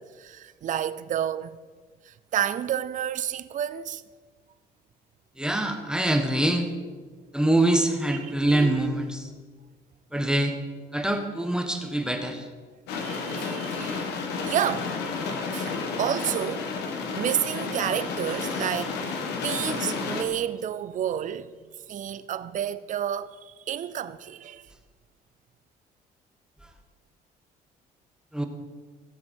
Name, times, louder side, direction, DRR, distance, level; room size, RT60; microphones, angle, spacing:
voice 1, 0.0-1.6 2.0-4.0 8.2-8.6 12.9-14.1 14.5-15.0 15.5-21.6 21.9-24.7, right 10 dB, 50° right, 0.6 m, -30 dB
voice 2, 5.4-6.7 7.3-9.3 10.1-10.6 10.9-12.5 26.6-26.7 28.3-28.4, right 1 dB, 5° right, 1.2 m, -24 dB
sound 1, 12.9-20.2, left 4 dB, 85° left, 1.5 m, -31 dB
17.5 x 7.7 x 4.4 m
cardioid pair, 110°, 17 cm